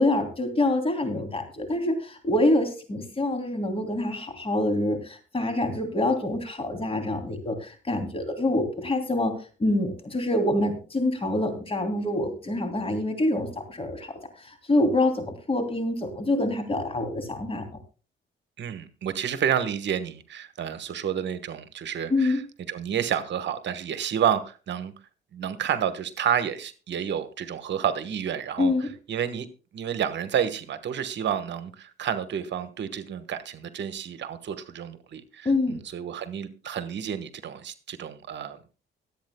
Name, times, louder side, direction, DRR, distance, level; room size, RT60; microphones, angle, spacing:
voice 1, 0.0-9.3 9.6-17.6 22.1-22.4 28.6-28.9 35.4-35.8, left 1 dB, 30° left, 6 dB, 2.9 m, -26 dB
voice 2, 18.6-22.4 22.7-24.9 25.3-29.5 29.7-38.8, right 9 dB, 65° right, 11 dB, 1.2 m, -30 dB
24.5 x 8.6 x 2.2 m, 0.34 s
cardioid pair, 90°, 20 cm